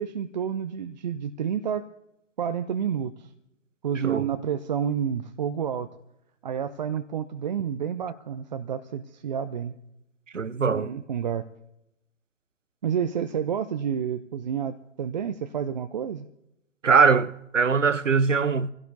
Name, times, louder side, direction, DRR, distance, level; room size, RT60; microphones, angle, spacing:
voice 1, 0.0-1.9 2.4-3.3 3.8-5.9 6.4-9.7 10.7-11.4 12.8-16.3, right 8 dB, 40° right, 0.6 m, -29 dB
voice 2, 10.3-10.9 16.8-18.7, right 5 dB, 85° right, 0.8 m, -21 dB
26.5 x 16.5 x 2.7 m
figure-of-eight pair, 130°, 37 cm